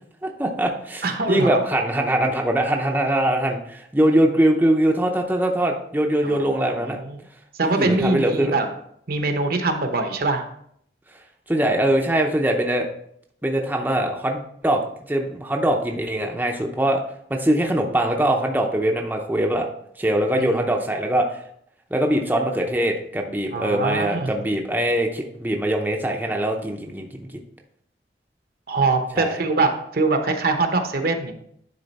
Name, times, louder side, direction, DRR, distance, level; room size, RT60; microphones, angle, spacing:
voice 1, 0.2-7.0 7.6-8.6 11.5-12.9 13.4-14.8 15.1-17.0 17.3-19.7 20.0-21.3 21.9-27.3 29.2-29.4, right 1 dB, 10° right, 1 dB, 0.7 m, -22 dB
voice 2, 1.0-1.6 6.2-7.2 7.6-8.7 9.1-10.4 20.4-20.6 23.5-24.3 28.7-31.3, right 3 dB, 55° right, 6 dB, 0.9 m, -23 dB
10.0 x 3.8 x 4.1 m, 0.69 s
head